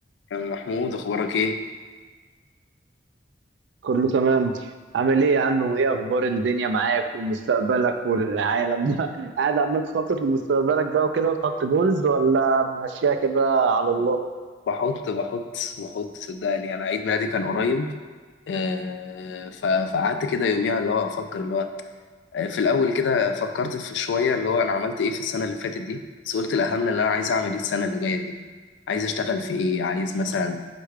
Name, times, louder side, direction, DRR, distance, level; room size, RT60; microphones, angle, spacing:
voice 1, 0.3-1.6 14.7-17.9 18.5-21.7 22.3-28.4 28.9-30.6, left 4 dB, 90° left, 7 dB, 0.3 m, -25 dB
voice 2, 3.8-4.5 4.9-14.2, right 4 dB, 85° right, 7 dB, 0.3 m, -22 dB
4.6 x 2.2 x 4.8 m, 1.4 s
head